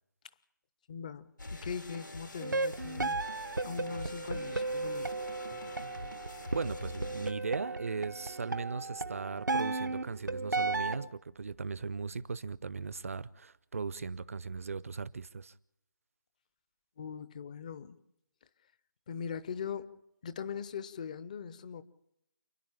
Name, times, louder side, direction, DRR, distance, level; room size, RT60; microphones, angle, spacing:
voice 1, 0.9-3.2 3.6-5.1 5.5-5.7 17.0-18.0 19.1-21.8, left 7 dB, 25° left, 0.7 m, -41 dB
sound 1, 1.4-7.3, left 2 dB, 80° left, 2.1 m, -45 dB
sound 2, 2.4-11.1, right 3 dB, 75° right, 1.0 m, -35 dB
voice 2, 6.5-15.5, right 4 dB, 45° right, 0.7 m, -38 dB
29.0 x 10.5 x 8.9 m
figure-of-eight pair, 150°, 10 cm